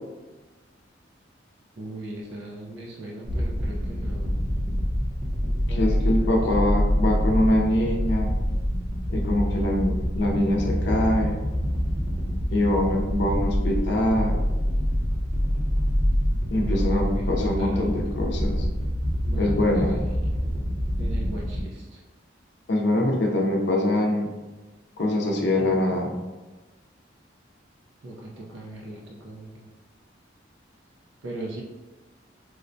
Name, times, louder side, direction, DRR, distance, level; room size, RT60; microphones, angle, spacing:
voice 1, 1.8-4.4 5.7-6.3 16.6-17.9 19.2-20.0 21.0-22.0 28.0-29.7 31.2-31.6, right 1 dB, 75° right, -3 dB, 0.5 m, -38 dB
sound 1, 3.2-21.6, equal, 35° right, 0.7 m, -26 dB
voice 2, 5.7-8.3 9.1-11.4 12.5-14.4 16.5-18.6 19.4-20.0 22.7-24.3 25.0-26.1, left 1 dB, 65° left, 0 dB, 0.5 m, -24 dB
4.8 x 2.1 x 2.5 m, 1.2 s
head